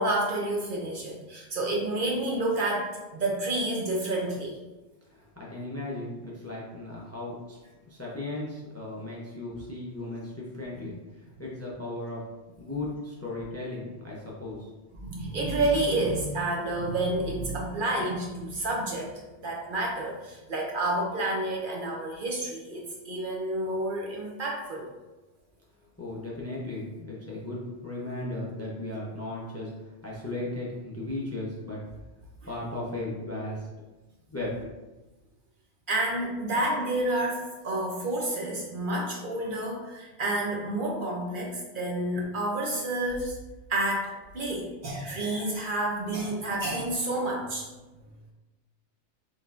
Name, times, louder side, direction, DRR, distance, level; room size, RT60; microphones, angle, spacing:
voice 1, 0.0-4.6 15.0-24.9 35.9-43.4 43.7-47.7, right 1 dB, 60° right, -1 dB, 0.7 m, -29 dB
voice 2, 5.1-7.6 7.9-12.3 12.6-14.7 26.0-31.8 32.5-33.7 34.3-34.6, left 2 dB, 20° left, -4 dB, 0.5 m, -36 dB
4.2 x 3.3 x 2.4 m, 1.1 s
omnidirectional pair, 1.1 m